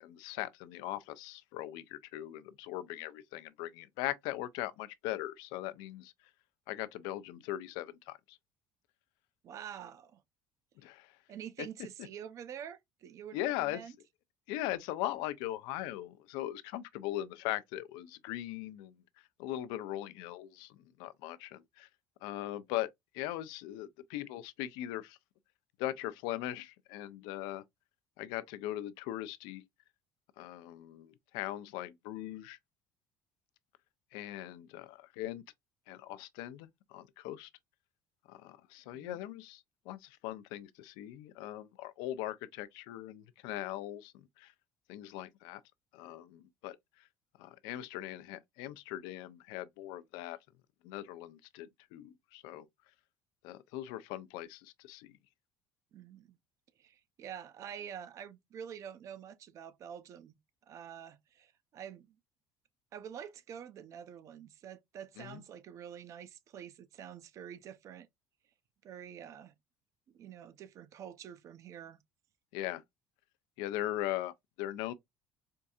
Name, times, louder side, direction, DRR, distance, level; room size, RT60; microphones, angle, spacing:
voice 1, 0.0-6.1 6.7-8.4 10.8-11.1 13.3-13.8 14.5-18.9 19.4-21.9 22.2-25.2 25.8-27.6 28.2-29.6 30.4-32.6 34.1-35.4 35.9-37.5 38.3-44.5 44.9-45.6 45.9-46.8 47.4-50.4 50.8-52.7 53.4-55.2 65.2-65.4 72.5-72.8 73.6-74.9, left 14 dB, 85° left, 0.5 m, -40 dB
voice 2, 9.4-10.2 11.3-13.9 38.9-39.2 55.9-56.4 56.8-60.4 60.7-62.2 62.9-68.1 68.8-69.5 70.1-72.0, right 9 dB, 45° right, 0.5 m, -47 dB
4.5 x 2.6 x 2.3 m
cardioid pair, 125°, 7 cm